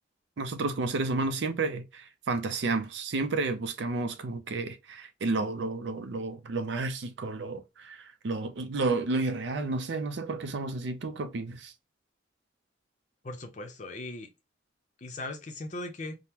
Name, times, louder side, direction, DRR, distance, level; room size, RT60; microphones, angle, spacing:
voice 1, 0.4-11.7, right 3 dB, 65° right, 0.5 m, -31 dB
voice 2, 13.2-14.3 15.0-16.2, left 2 dB, 40° left, 0.5 m, -38 dB
3.5 x 2.0 x 2.8 m
head